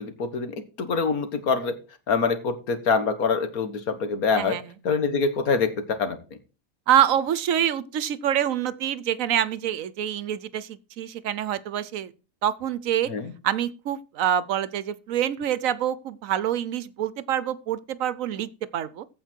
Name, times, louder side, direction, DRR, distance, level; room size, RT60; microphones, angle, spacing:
voice 1, 0.0-1.7 2.1-4.6 4.8-6.2 13.1-13.3, left 5 dB, 90° left, 1.9 m, -25 dB
voice 2, 4.4-4.7 6.9-12.1 12.4-13.1 13.4-19.1, right 10 dB, 70° right, 1.1 m, -26 dB
15.0 x 5.1 x 4.5 m
omnidirectional pair, 1.5 m